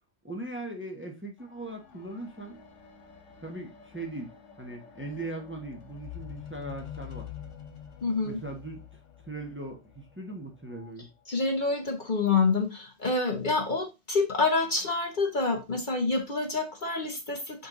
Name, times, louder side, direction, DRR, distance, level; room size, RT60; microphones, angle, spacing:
voice 1, 0.2-2.6 3.4-4.3 4.6-7.3 8.3-8.8 9.2-11.1, right 2 dB, 10° right, 2 dB, 1.1 m, -39 dB
sound 1, 1.4-10.9 11.7-11.8, left 9 dB, 85° left, 1.3 m, -47 dB
voice 2, 8.0-8.4 11.3-17.7, left 3 dB, 45° left, 3 dB, 1.0 m, -27 dB
5.5 x 4.5 x 3.8 m, 0.26 s
omnidirectional pair, 1.2 m